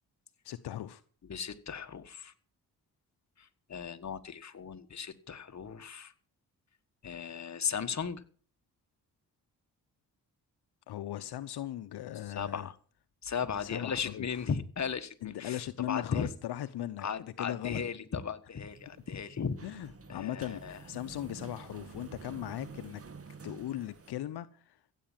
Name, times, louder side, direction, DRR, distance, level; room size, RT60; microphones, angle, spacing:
voice 1, 0.4-1.0 10.9-12.7 13.6-14.4 15.2-17.8 19.6-23.0 23.4-24.8, left 12 dB, 75° left, 0.9 m, -38 dB
voice 2, 1.3-2.3 3.4-6.1 7.0-8.2 12.2-12.8 13.2-16.3 17.0-19.6 20.1-20.8, left 6 dB, 45° left, 1.6 m, -36 dB
sound 1, 18.7-24.1, right 4 dB, 35° right, 1.7 m, -49 dB
15.5 x 8.6 x 7.4 m
cardioid pair, 65°, 39 cm